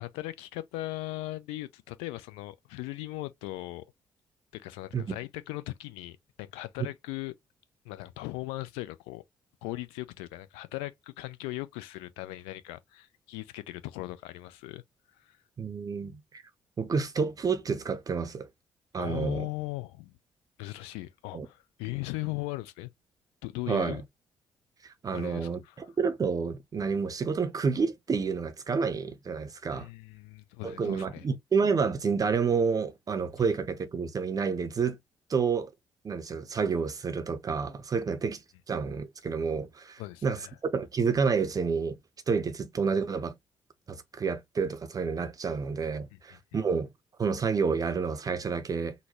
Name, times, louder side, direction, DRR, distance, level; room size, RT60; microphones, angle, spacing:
voice 1, 0.0-3.8 4.5-7.3 7.8-9.2 9.6-14.8 15.2-15.4 19.0-20.1 20.6-22.9 23.4-24.0 25.1-25.7 29.7-31.3 40.0-40.5 46.1-46.2 46.5-46.6, left 18 dB, 70° left, 0.4 m, -38 dB
voice 2, 15.6-16.4 16.8-18.5 18.9-19.5 21.3-21.5 23.7-24.0 24.8-29.9 30.6-35.0 35.3-35.7 36.0-42.0 42.3-43.3 43.9-46.9 47.2-48.9, right 5 dB, 35° right, 0.6 m, -29 dB
3.9 x 2.2 x 2.9 m
figure-of-eight pair, 40°, 11 cm